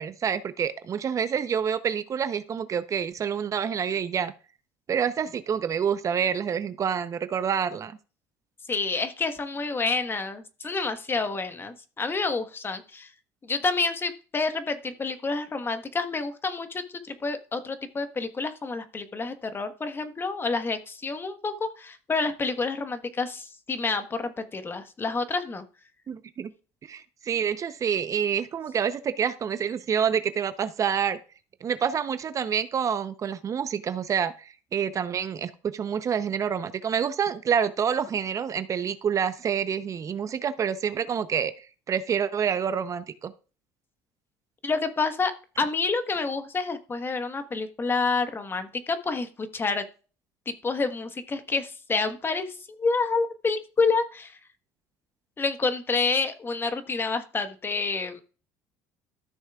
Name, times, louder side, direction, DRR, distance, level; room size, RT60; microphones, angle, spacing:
voice 1, 0.0-4.3 4.9-8.0 26.1-26.5 26.9-31.2 31.6-43.3, right 7 dB, 40° right, 12 dB, 0.7 m, -27 dB
voice 2, 8.7-13.1 13.4-25.6 44.6-45.3 45.6-49.8 50.5-54.4 55.4-58.2, left 4 dB, 25° left, 9 dB, 1.3 m, -28 dB
14.0 x 6.3 x 2.4 m, 0.35 s
supercardioid pair, 80°, 8 cm